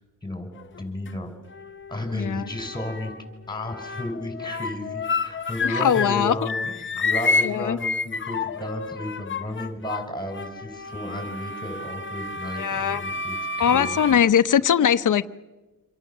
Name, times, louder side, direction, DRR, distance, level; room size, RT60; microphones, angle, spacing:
sound 1, 0.6-1.1 1.5-3.3 3.6-6.2 6.5-14.1, left 3 dB, 35° left, 1.0 m, -30 dB
voice 1, 0.8-1.3 1.9-3.1 3.5-14.2, left 1 dB, 15° left, 6 dB, 5.6 m, -33 dB
voice 2, 2.1-2.5 5.6-6.3 7.4-7.8 12.6-13.0 13.6-15.3, left 8 dB, 65° left, 11 dB, 0.9 m, -21 dB
27.5 x 26.0 x 7.3 m, 1.2 s
wide cardioid pair, 105°, 33 cm